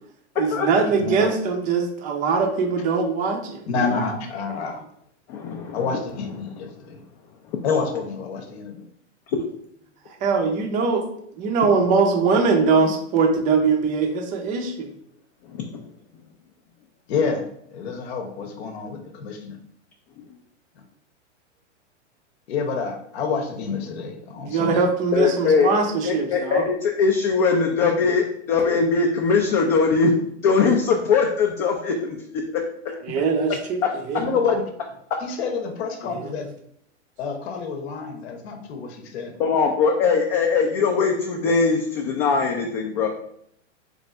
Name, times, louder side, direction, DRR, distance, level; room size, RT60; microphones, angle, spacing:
voice 1, 0.4-3.6 10.2-11.0 11.4-14.9 24.4-26.7 33.0-34.3 36.1-36.3, right 4 dB, 20° right, 3 dB, 0.5 m, -22 dB
voice 2, 0.9-1.3 3.7-4.8 5.7-7.0 7.6-8.8 17.1-17.4 17.7-19.6 22.5-24.9 34.2-34.6 35.2-36.5 37.2-39.3, left 5 dB, 60° left, 4 dB, 0.9 m, -28 dB
voice 3, 5.3-5.8 7.5-7.6 15.5-15.6 25.1-25.7 26.0-30.1 30.4-32.2 39.4-43.1, left 5 dB, 35° left, 1 dB, 0.5 m, -21 dB
3.3 x 2.5 x 4.1 m, 0.68 s
hypercardioid pair, 135°, 36 cm